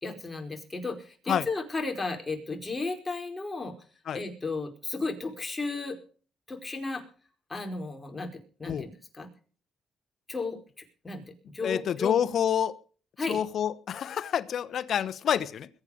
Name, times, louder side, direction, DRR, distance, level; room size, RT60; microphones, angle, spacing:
voice 1, 0.0-3.7 4.1-6.0 6.5-7.0 7.5-9.3 10.3-10.6 11.0-11.2 11.5-12.2 13.2-13.4, left 3 dB, 20° left, 4.8 m, -34 dB
voice 2, 11.6-12.8 13.3-15.7, left 9 dB, 65° left, 1.0 m, -28 dB
22.0 x 8.7 x 5.1 m
cardioid pair, 90°, 0 cm